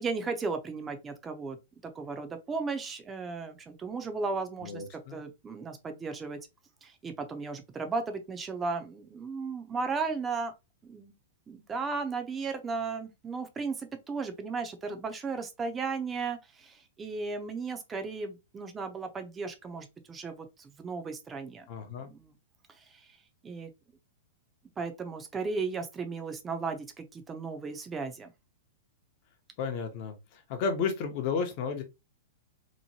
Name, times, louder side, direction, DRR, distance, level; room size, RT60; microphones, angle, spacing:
voice 1, 0.0-1.6 1.8-6.4 6.8-10.5 10.8-11.1 11.5-21.7 22.0-22.3 22.9-23.0 23.4-23.7 24.8-28.3, right 4 dB, 20° right, 0.5 m, -35 dB
voice 2, 4.6-5.2 21.7-22.1 29.6-30.1 30.5-31.8, left 5 dB, 50° left, 0.7 m, -32 dB
2.9 x 2.1 x 2.7 m
hypercardioid pair, 120°, 0 cm